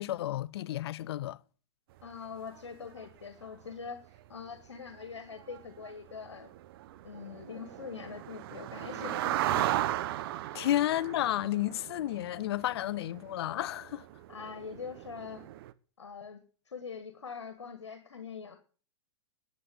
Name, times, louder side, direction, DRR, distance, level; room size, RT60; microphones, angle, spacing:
voice 1, 0.0-1.4 10.5-14.0, left 13 dB, 65° left, 0.7 m, -31 dB
voice 2, 2.0-4.0 4.3-6.5 7.0-9.8 10.5-10.7 14.3-15.4 16.0-16.4 16.7-18.6, left 6 dB, 85° left, 1.7 m, -43 dB
sound 1, 2.0-2.1 2.6-2.7 2.8-3.1 3.4-3.7 4.1-4.2 4.6-4.7 4.9-5.1 5.3-15.7, right 14 dB, 55° right, 1.0 m, -37 dB
11.0 x 8.2 x 9.3 m
hypercardioid pair, 110°, 14 cm